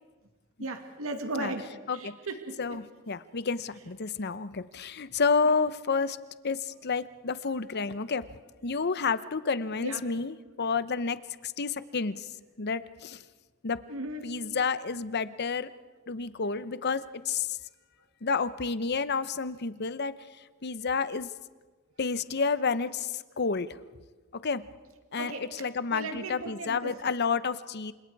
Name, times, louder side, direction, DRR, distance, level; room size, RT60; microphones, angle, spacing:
voice 1, 0.6-2.8 9.8-10.1 13.9-14.3 25.2-26.9, right 2 dB, 75° right, 6 dB, 2.0 m, -37 dB
voice 2, 2.6-6.2 6.4-8.2 8.6-11.2 11.4-12.3 12.6-13.2 13.6-13.8 14.2-15.7 16.1-17.6 18.2-20.1 20.6-21.3 22.0-23.7 24.4-24.6 25.1-27.9, left 5 dB, 50° left, 14 dB, 0.8 m, -30 dB
28.5 x 26.5 x 4.8 m, 1.3 s
head